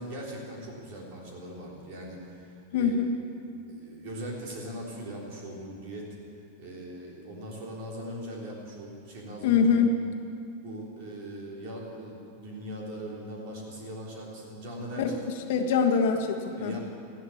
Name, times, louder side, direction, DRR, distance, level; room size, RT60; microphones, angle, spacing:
voice 1, 0.0-3.0 3.5-6.1 6.6-9.7 10.6-15.2 16.6-16.8, right 1 dB, 40° right, -2 dB, 3.5 m, -40 dB
voice 2, 2.7-3.2 9.4-10.0 15.0-15.2 15.5-16.8, left 5 dB, 50° left, 3 dB, 1.5 m, -24 dB
14.0 x 10.5 x 8.5 m, 2.4 s
supercardioid pair, 180°, 0 cm